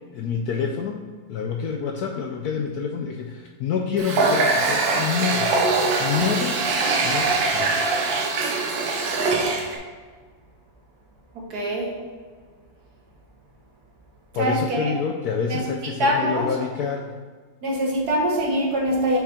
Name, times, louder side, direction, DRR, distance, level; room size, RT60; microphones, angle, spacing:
voice 1, 0.1-6.6 7.0-7.9 14.3-17.2, left 6 dB, 75° left, 2 dB, 0.9 m, -27 dB
Water tap faucet, 4.0-9.8, right 3 dB, 80° right, 1.6 m, -22 dB
voice 2, 11.3-11.9 14.4-14.9 15.5-15.6 16.0-16.5 17.6-19.2, equal, 60° right, -1 dB, 1.7 m, -23 dB
5.9 x 4.9 x 4.3 m, 1.5 s
omnidirectional pair, 2.1 m